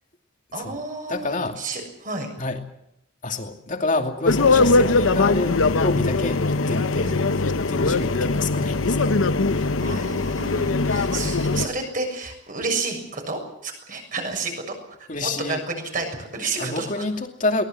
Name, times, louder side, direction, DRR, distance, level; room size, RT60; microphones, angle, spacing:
voice 1, 0.5-2.3 7.0-7.2 9.8-14.8 15.2-16.9, right 3 dB, 45° right, 4 dB, 6.9 m, -30 dB
voice 2, 1.1-1.6 2.4-2.6 3.2-9.2 9.5-10.1 15.1-15.6 16.6-17.6, left 2 dB, 40° left, 4 dB, 2.6 m, -28 dB
sound 1, 4.2-11.7, left 3 dB, 85° left, 0.9 m, -21 dB
23.0 x 19.5 x 7.7 m, 0.81 s
head